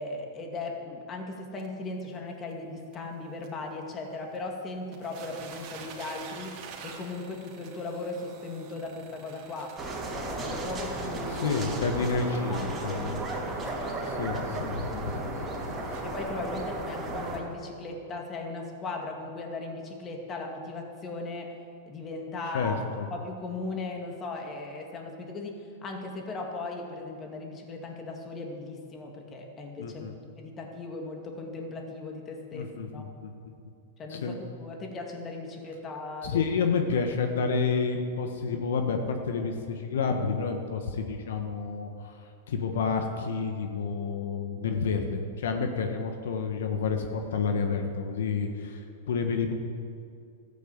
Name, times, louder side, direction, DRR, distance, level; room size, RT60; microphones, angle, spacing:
voice 1, 0.0-9.8 10.1-11.7 12.5-13.2 16.0-21.6 21.9-22.8 23.1-30.1 30.4-33.0 34.0-36.5, left 3 dB, 25° left, 2 dB, 2.3 m, -37 dB
sound 1, 1.6-1.7 2.2-2.3 2.5-2.6 2.9-3.0 3.4-3.5 4.4-4.5 4.7-16.3 16.9-17.0 17.5-17.6, right 5 dB, 45° right, 2.6 m, -48 dB
sound 2, 9.8-17.4, right 2 dB, 15° right, 2.9 m, -34 dB
voice 2, 11.3-13.2 13.6-13.7 14.0-15.7 22.5-23.1 29.8-30.1 32.5-33.3 34.1-34.4 36.2-42.2 42.5-49.5, left 5 dB, 80° left, 5 dB, 1.4 m, -30 dB
13.5 x 9.3 x 8.1 m, 2.5 s
hypercardioid pair, 130°, 0 cm